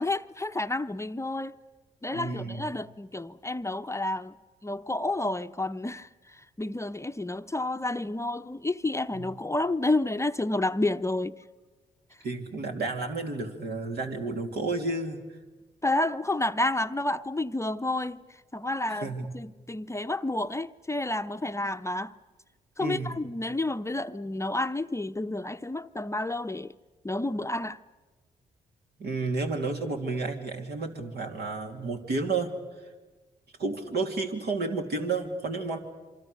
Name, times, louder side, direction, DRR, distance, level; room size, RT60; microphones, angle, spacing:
voice 1, 0.0-1.5 2.0-4.3 4.6-11.3 15.8-18.2 18.5-22.1 22.8-26.7 27.0-27.8, left 2 dB, 15° left, 0.7 m, -30 dB
voice 2, 2.1-2.7 9.1-9.3 12.2-15.2 19.0-19.3 22.8-23.2 29.0-32.5 33.6-35.8, right 3 dB, 65° right, 2.9 m, -31 dB
27.0 x 24.5 x 6.7 m
hypercardioid pair, 45°, 18 cm